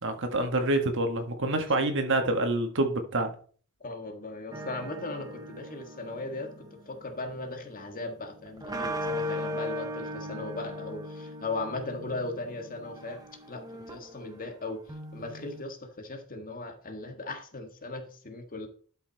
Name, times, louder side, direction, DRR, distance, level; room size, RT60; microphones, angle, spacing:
voice 1, 0.0-3.3, right 2 dB, 60° right, 6 dB, 1.6 m, -27 dB
voice 2, 3.8-13.2 13.5-14.8 15.1-18.7, left 2 dB, 40° left, 5 dB, 1.7 m, -38 dB
sound 1, 4.5-15.6, left 1 dB, 15° right, 1.0 m, -39 dB
12.0 x 5.8 x 4.1 m, 0.43 s
head